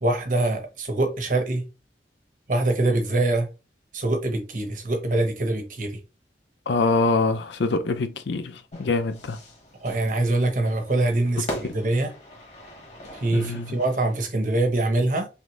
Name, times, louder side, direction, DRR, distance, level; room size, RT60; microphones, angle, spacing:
voice 1, 0.0-1.7 2.5-3.5 3.9-6.0 9.8-12.1 13.1-15.3, right 2 dB, 45° right, 1.0 m, -24 dB
voice 2, 6.7-9.4 13.3-13.7, left 3 dB, 85° left, 0.6 m, -24 dB
Fire / Fireworks, 8.7-14.3, left 1 dB, 40° left, 1.3 m, -40 dB
5.8 x 2.1 x 3.1 m
head